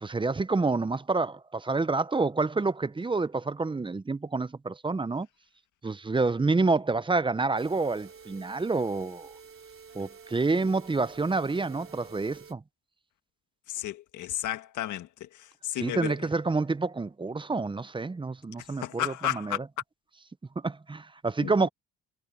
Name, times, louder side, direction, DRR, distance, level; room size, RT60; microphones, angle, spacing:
voice 1, 0.0-5.3 5.8-9.3 9.9-12.6 15.8-19.6 20.6-21.7, right 3 dB, 15° right, 0.7 m, -28 dB
sound 1, 7.6-12.5, right 6 dB, 45° right, 3.7 m, -50 dB
voice 2, 13.7-16.1 18.8-19.6 21.4-21.5, left 13 dB, 75° left, 1.7 m, -33 dB
cardioid pair, 90°, 30 cm